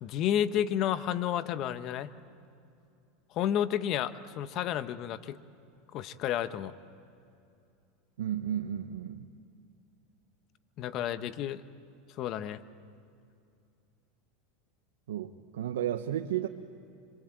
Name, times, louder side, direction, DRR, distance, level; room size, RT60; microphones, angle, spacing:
voice 1, 0.0-2.1 3.3-5.4 5.9-6.7 10.8-11.6 12.2-12.6, left 10 dB, 50° left, 12 dB, 1.2 m, -31 dB
voice 2, 8.2-9.3 15.1-16.5, right 10 dB, 90° right, 5 dB, 1.0 m, -33 dB
26.0 x 25.0 x 8.9 m, 2.5 s
supercardioid pair, 115°, 0 cm